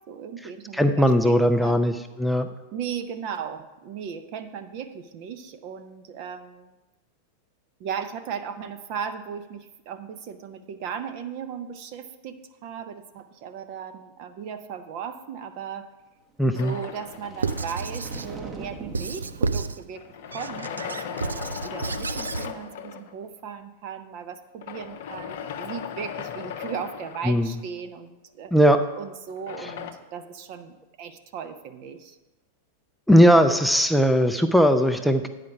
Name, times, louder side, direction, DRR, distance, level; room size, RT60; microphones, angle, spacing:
voice 1, 0.0-1.8 2.7-6.7 7.8-15.9 16.5-20.1 20.3-28.5 29.0-32.2, right 7 dB, 45° right, 11 dB, 0.6 m, -37 dB
voice 2, 0.7-1.9 2.2-2.5 16.4-16.7 27.2-27.5 28.5-28.8 29.6-29.7 33.1-35.3, equal, ahead, 6 dB, 0.4 m, -18 dB
sound 1, 16.5-20.7, right 4 dB, 20° right, 0.9 m, -43 dB
sound 2, 16.6-18.1 20.0-23.1 24.6-27.8 29.3-29.9, left 8 dB, 55° left, 0.6 m, -37 dB
Squeak / Writing, 17.4-18.3 18.9-19.8 20.3-22.5, right 4 dB, 75° right, 0.3 m, -30 dB
9.5 x 5.0 x 5.8 m, 1.1 s
figure-of-eight pair, 90°, 0 cm